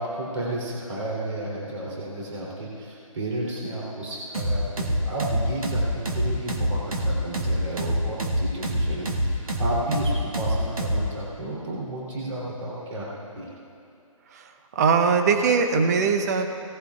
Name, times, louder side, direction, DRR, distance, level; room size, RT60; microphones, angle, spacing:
voice 1, 0.0-13.5, right 1 dB, 60° right, -5 dB, 3.3 m, -32 dB
sound 1, 4.3-11.1, right 1 dB, 90° right, 1.7 m, -25 dB
voice 2, 14.7-16.5, right 5 dB, 30° right, 6 dB, 0.8 m, -21 dB
18.5 x 14.5 x 2.4 m, 2.5 s
figure-of-eight pair, 155°, 18 cm